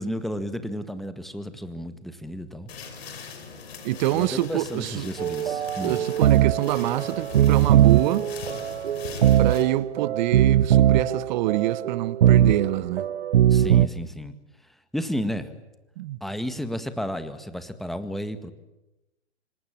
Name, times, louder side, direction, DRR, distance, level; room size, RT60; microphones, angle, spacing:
voice 1, 0.0-2.7 4.1-6.0 13.5-14.3 14.9-15.6 16.2-18.5, equal, ahead, 1.8 m, -32 dB
sound 1, 2.7-9.6, left 5 dB, 60° left, 5.9 m, -41 dB
voice 2, 3.8-5.1 5.8-8.3 9.4-13.1 16.0-16.2, right 15 dB, 40° right, 1.2 m, -26 dB
sound 2, 5.2-13.9, right 11 dB, 60° right, 1.1 m, -21 dB
27.0 x 25.0 x 8.9 m
figure-of-eight pair, 115°, 35 cm